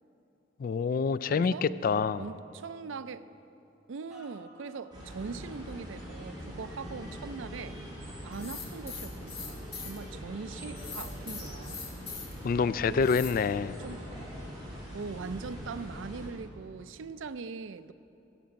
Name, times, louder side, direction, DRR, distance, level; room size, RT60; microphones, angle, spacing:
voice 1, 0.6-2.2 12.4-13.8, left 5 dB, 45° left, 0.3 m, -27 dB
voice 2, 1.3-1.7 2.2-3.2 3.9-7.9 8.2-11.9 12.8-13.1 13.8-14.0 14.9-17.9, right 4 dB, 80° right, 0.5 m, -41 dB
sound 1, 4.1-11.9 12.5-12.6, equal, ahead, 2.2 m, -56 dB
sound 2, 4.9-16.3, equal, 25° right, 3.8 m, -43 dB
sound 3, 8.3-10.0 10.8-12.4 13.0-13.3, left 6 dB, 30° left, 1.8 m, -41 dB
15.0 x 6.9 x 8.6 m
head